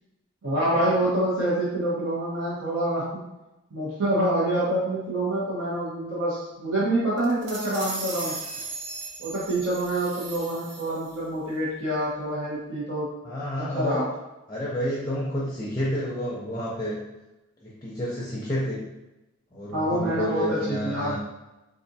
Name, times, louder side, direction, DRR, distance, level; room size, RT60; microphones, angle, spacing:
voice 1, 0.4-3.2 3.7-8.4 9.2-13.1 13.7-14.1 19.7-21.2, right 1 dB, 70° right, -9 dB, 1.2 m, -26 dB
sound 1, 7.2-11.2, right 3 dB, 55° right, 0.7 m, -37 dB
voice 2, 13.2-14.0 14.5-17.0 17.6-18.8 19.5-21.2, equal, 20° left, -6 dB, 0.5 m, -29 dB
4.3 x 2.5 x 2.7 m, 1.0 s
head